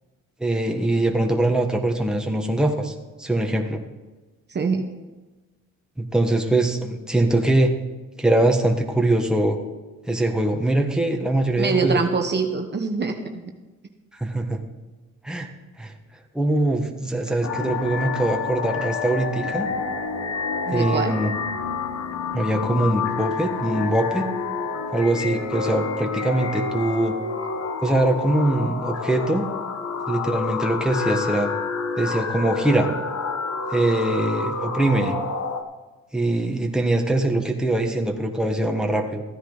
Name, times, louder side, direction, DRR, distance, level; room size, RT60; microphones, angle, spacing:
voice 1, 0.4-3.8 6.0-7.7 8.2-9.6 10.1-12.0 14.2-14.6 15.2-15.5 15.8-15.9 16.3-19.7 20.7-21.3 22.3-24.3 24.9-27.1 27.8-29.4 30.1-31.5 32.0-32.9 33.7-35.2 36.1-39.2, right 1 dB, ahead, 2 dB, 1.5 m, -22 dB
voice 2, 4.5-4.8 11.6-13.2 20.7-21.1, right 4 dB, 35° right, 4 dB, 1.2 m, -24 dB
sound 1, 17.4-35.6, left 5 dB, 60° left, 1.4 m, -28 dB
14.5 x 10.0 x 4.1 m, 1.2 s
cardioid pair, 90°, 30 cm